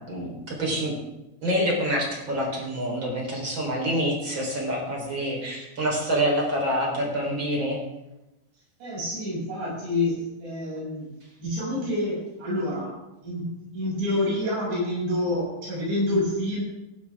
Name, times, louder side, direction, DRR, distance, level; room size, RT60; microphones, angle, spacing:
voice 1, 0.1-1.0 1.4-7.8, equal, 30° right, -1 dB, 4.5 m, -26 dB
voice 2, 8.8-11.1 11.4-16.6, left 1 dB, 85° right, -6 dB, 9.4 m, -28 dB
17.5 x 16.5 x 3.7 m, 0.94 s
omnidirectional pair, 4.7 m